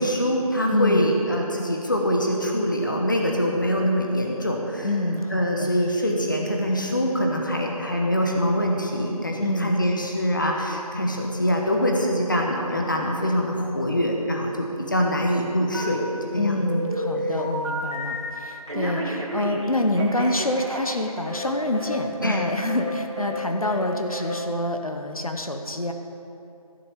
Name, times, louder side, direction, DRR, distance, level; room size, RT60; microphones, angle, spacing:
voice 1, 0.0-4.9 5.3-16.0 16.3-16.6 17.2-17.3 22.2-22.4, equal, 30° left, 0 dB, 1.1 m, -24 dB
voice 2, 0.7-1.2 4.8-5.8 9.4-9.7 16.4-25.9, left 1 dB, 65° left, 4 dB, 1.1 m, -26 dB
Telephone, 15.7-16.3 16.7-18.3 18.7-21.5 21.7-22.0 22.2-22.4 22.7-22.9 23.2-23.4 23.6-23.9 24.1-24.3, equal, 50° right, 2.3 m, -31 dB
15.0 x 6.5 x 6.8 m, 2.7 s
figure-of-eight pair, 170°, 19 cm